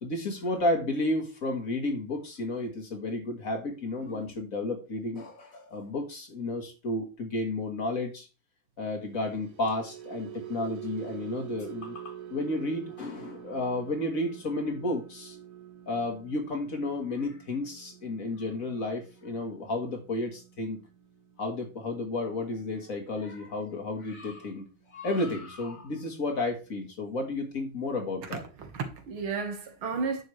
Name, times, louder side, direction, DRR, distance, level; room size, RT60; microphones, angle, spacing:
voice 1, 0.0-8.3 8.8-15.4 15.9-20.8 21.4-24.7 24.9-28.4, left 2 dB, 45° left, 1.7 m, -32 dB
sound 1, 9.1-25.5 25.8-26.1 26.4-26.7, right 11 dB, 55° right, 1.0 m, -47 dB
voice 2, 28.3-30.2, right 5 dB, 85° right, 2.3 m, -33 dB
9.7 x 6.5 x 3.2 m
omnidirectional pair, 2.2 m